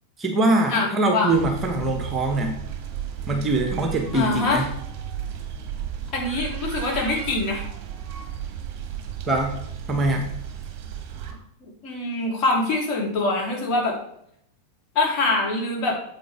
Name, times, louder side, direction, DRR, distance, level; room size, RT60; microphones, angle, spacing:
voice 1, 0.2-2.6 3.3-4.7 9.3-9.6 9.9-10.3, right 2 dB, 20° right, 3 dB, 1.3 m, -23 dB
voice 2, 0.7-1.3 4.1-4.6 6.1-7.6 11.8-14.0 14.9-16.0, left 2 dB, 35° left, -2 dB, 3.1 m, -24 dB
sound 1, 1.3-11.3, right 9 dB, 35° right, 1.5 m, -34 dB
9.2 x 7.7 x 3.4 m, 0.71 s
figure-of-eight pair, 90°, 0 cm